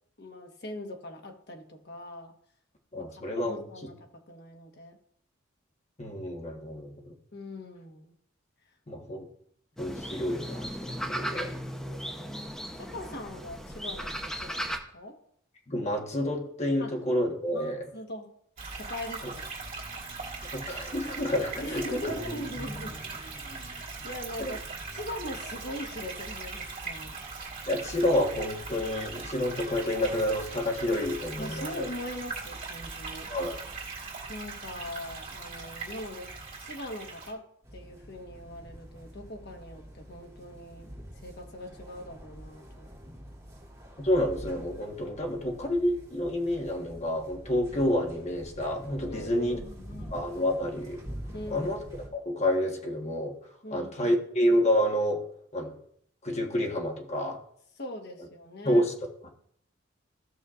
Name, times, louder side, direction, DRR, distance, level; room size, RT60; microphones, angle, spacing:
voice 1, 0.2-2.3 3.0-5.0 7.3-8.1 11.8-12.4 12.8-15.2 16.8-16.9 17.5-18.3 18.7-19.4 21.6-24.6 24.9-27.2 31.4-33.3 34.3-36.3 36.6-37.4 37.7-40.9 41.2-42.9 49.1-50.3 51.3-51.8 53.6-54.2 57.8-58.8, left 1 dB, 55° left, 3 dB, 1.4 m, -41 dB
voice 2, 2.9-3.6 6.0-7.1 8.9-9.3 9.8-11.5 15.7-17.8 20.5-22.1 24.4-24.5 27.7-31.9 33.3-33.6 44.0-49.6 50.1-51.0 51.5-51.8 52.1-53.4 53.7-55.2 55.5-55.8 56.2-57.4 58.6-58.9, left 1 dB, 35° left, 1 dB, 1.4 m, -29 dB
sound 1, 9.8-14.8, equal, 5° left, 0.8 m, -36 dB
sound 2, 18.6-37.3, right 3 dB, 45° right, 2.6 m, -40 dB
sound 3, 37.6-52.1, equal, 20° right, 2.6 m, -46 dB
15.5 x 6.5 x 2.5 m, 0.69 s
head